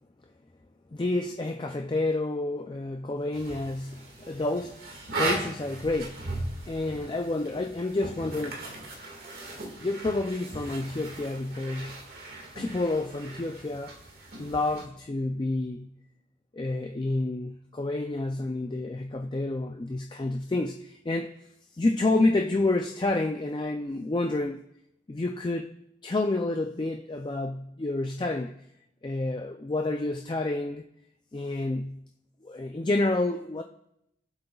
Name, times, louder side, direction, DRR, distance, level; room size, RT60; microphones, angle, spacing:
voice 1, 0.9-4.9 5.1-6.4 6.7-8.6 9.8-12.0 12.5-13.9 14.4-15.9 16.5-21.3 21.8-24.6 25.1-25.7 26.0-28.5 29.0-30.8 31.3-32.0 32.4-33.6, left 2 dB, 25° left, 0.4 m, -29 dB
sound 1, 3.3-14.8, right 2 dB, 55° right, 1.9 m, -38 dB
22.0 x 7.7 x 2.3 m
head